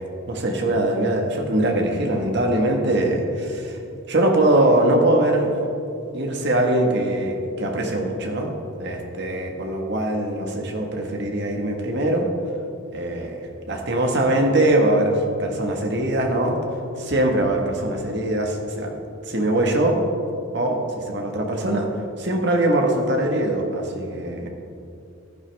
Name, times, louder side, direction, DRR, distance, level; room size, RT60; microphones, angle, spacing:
voice 1, 0.3-3.8 4.1-5.5 6.1-8.5 8.8-12.3 12.9-13.4 13.7-16.6 17.0-18.9 19.3-20.0 20.5-21.9 22.2-24.5, right 1 dB, 55° right, 2 dB, 1.6 m, -22 dB
15.0 x 11.0 x 3.5 m, 2.6 s
head